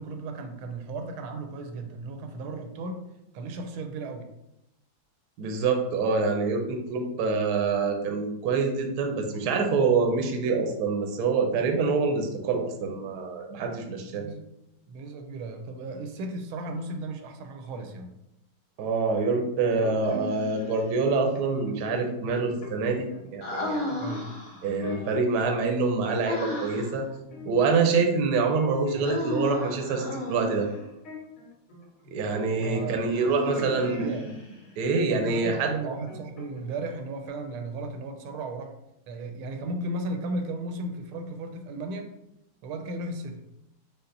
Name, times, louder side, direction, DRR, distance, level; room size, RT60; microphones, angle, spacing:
voice 1, 0.0-3.1 3.3-4.3 14.1-14.4 14.9-18.1 24.0-24.3 27.1-27.2 28.9-29.3 32.6-33.1 33.4-34.3 35.1-38.7 39.1-42.1 42.6-43.4, right 2 dB, 85° right, 5 dB, 1.5 m, -35 dB
voice 2, 5.4-14.2 18.8-24.0 24.6-27.0 27.4-30.7 32.1-34.0 34.8-35.7, right 4 dB, 70° right, 3 dB, 0.9 m, -26 dB
sound 1, 19.7-20.8 21.4-21.7 22.0-23.3 23.9-25.4 25.8-26.7 27.0-29.2 29.5-34.4 34.8-35.5 35.7-36.8 37.0-37.3, left 4 dB, 75° left, 2.2 m, -45 dB
Human voice, 20.0-20.9 23.4-24.8 26.2-27.0 29.0-30.8 33.1-34.7, left 1 dB, 25° left, 0.7 m, -34 dB
5.7 x 2.0 x 3.9 m, 0.84 s
omnidirectional pair, 2.3 m